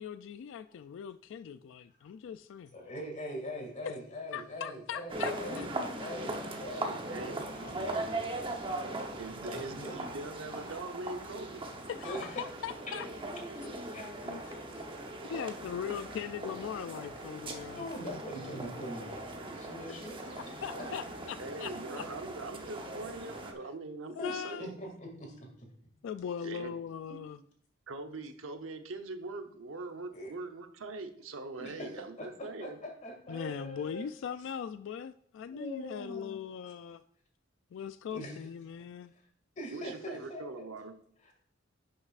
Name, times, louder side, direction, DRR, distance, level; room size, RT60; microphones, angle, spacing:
voice 1, 0.0-2.7 4.3-5.7 11.9-13.1 14.3-14.9 15.3-18.2 20.4-22.1 24.2-24.6 26.0-27.4 33.3-37.0 37.7-39.1, left 8 dB, 70° left, 0.3 m, -40 dB
voice 2, 2.7-8.6 9.4-10.2 12.0-12.4 13.9-14.4 17.8-20.4 20.8-20.9 24.2-25.3 30.1-30.3 31.6-31.9 32.2-34.1 35.5-36.4 38.1-38.4 39.6-40.6, equal, 40° left, 2.3 m, -43 dB
sound 1, 5.1-23.5, right 2 dB, 25° right, 0.9 m, -40 dB
voice 3, 7.1-7.5 7.8-7.9 9.2-11.6 21.4-24.8 26.4-26.7 27.9-32.8 39.7-41.0, right 3 dB, 90° right, 0.8 m, -42 dB
11.0 x 6.5 x 2.4 m
head